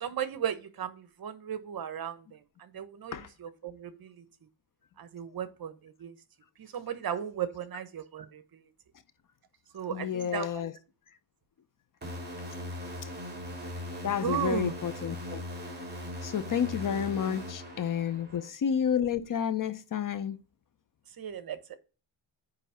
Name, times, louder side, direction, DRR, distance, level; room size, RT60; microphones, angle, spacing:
voice 1, 0.0-2.4 2.7-4.1 5.0-6.1 6.6-8.6 9.7-10.5 14.2-14.7 21.2-21.8, right 9 dB, 45° right, 1.0 m, -36 dB
voice 2, 9.9-10.7 13.0-13.1 14.0-15.4 16.2-20.4, left 8 dB, 40° left, 0.7 m, -30 dB
sound 1, 12.0-18.5, left 1 dB, 20° right, 2.6 m, -40 dB
9.3 x 3.5 x 5.6 m
cardioid pair, 145°, 48 cm